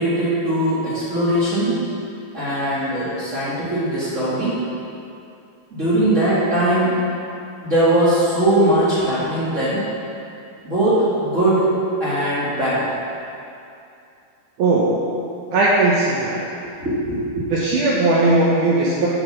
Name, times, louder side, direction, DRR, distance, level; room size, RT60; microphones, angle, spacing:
voice 1, 0.0-1.8 2.3-4.5 5.7-7.0 7.6-9.8 10.6-11.7 12.0-12.8 16.8-17.5, right 1 dB, 40° right, -10 dB, 1.1 m, -20 dB
voice 2, 14.6-15.0 15.5-16.4 17.5-19.1, right 2 dB, 80° right, -5 dB, 1.8 m, -18 dB
7.8 x 7.0 x 6.3 m, 2.6 s
omnidirectional pair, 4.8 m